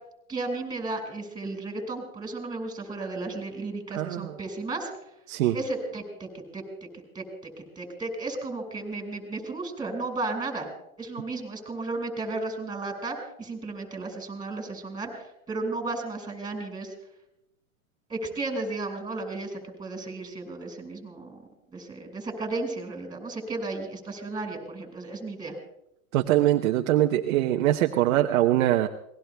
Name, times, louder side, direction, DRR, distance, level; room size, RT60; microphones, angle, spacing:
voice 1, 0.3-4.9 5.5-6.3 6.5-6.6 7.1-10.7 11.0-16.9 18.1-21.4 21.7-25.6, right 3 dB, 10° right, 4 dB, 5.4 m, -34 dB
voice 2, 3.9-4.3 5.3-5.5 26.1-28.9, right 14 dB, 65° right, 4 dB, 1.0 m, -23 dB
28.0 x 20.0 x 2.3 m, 0.81 s
hypercardioid pair, 120°, 42 cm